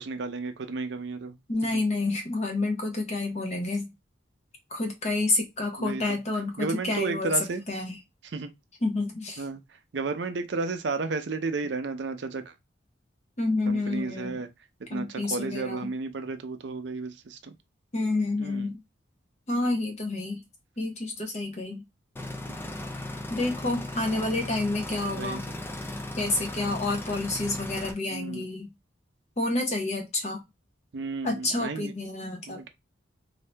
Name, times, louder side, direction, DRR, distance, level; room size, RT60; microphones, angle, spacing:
voice 1, 0.0-1.4 1.7-1.8 5.8-6.2 6.6-7.6 8.2-8.5 9.4-9.6 9.9-12.5 13.7-14.5 14.8-17.6 18.4-18.7 22.5-22.7 25.1-25.6 28.1-28.5 30.9-31.9 32.5-32.7, right 3 dB, 65° right, 0.5 m, -33 dB
voice 2, 1.5-3.9 4.7-7.3 7.7-8.0 8.8-9.4 13.4-14.4 14.9-15.9 17.9-18.8 19.5-20.4 20.8-21.8 23.3-25.4 26.2-28.7 29.4-30.4 31.2-32.7, left 2 dB, 35° left, 0.8 m, -29 dB
sound 1, 22.2-27.9, left 1 dB, 10° left, 0.3 m, -37 dB
2.7 x 2.6 x 3.3 m
head